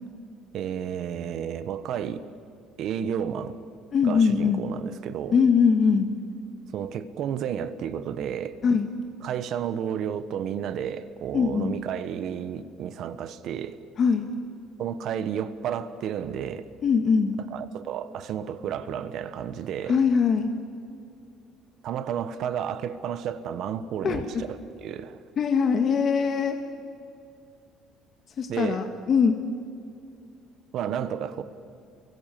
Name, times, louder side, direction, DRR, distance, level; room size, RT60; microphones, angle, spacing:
voice 1, 0.5-2.2 2.8-3.6 4.0-5.4 6.7-8.6 9.2-13.8 14.8-16.7 17.5-20.0 21.8-25.2 28.5-28.8 30.7-31.4, right 8 dB, 50° right, 13 dB, 1.2 m, -32 dB
voice 2, 3.9-4.6 5.3-6.1 8.6-8.9 11.3-11.8 14.0-14.3 16.8-17.4 19.9-20.5 24.0-24.4 25.4-26.6 28.4-29.4, left 6 dB, 35° left, 5 dB, 1.6 m, -22 dB
30.0 x 23.5 x 7.6 m, 2.5 s
cardioid pair, 170°, 0 cm